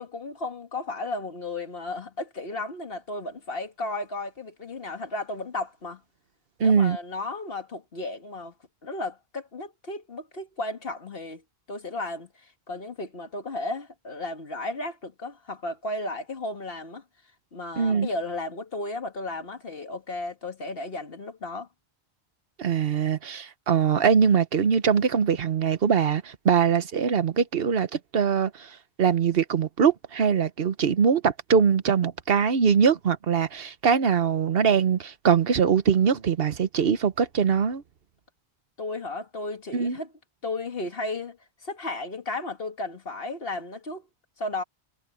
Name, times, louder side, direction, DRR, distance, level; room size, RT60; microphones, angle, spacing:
voice 1, 0.0-6.0 6.6-8.5 8.8-11.4 11.7-17.0 17.5-21.7 38.8-40.1 40.4-41.4 41.6-44.1 44.4-44.6, left 2 dB, 65° left, 2.1 m, -34 dB
voice 2, 6.6-7.0 17.8-18.1 22.6-37.8 39.7-40.0, right 6 dB, 70° right, 1.1 m, -22 dB
omnidirectional pair, 1.0 m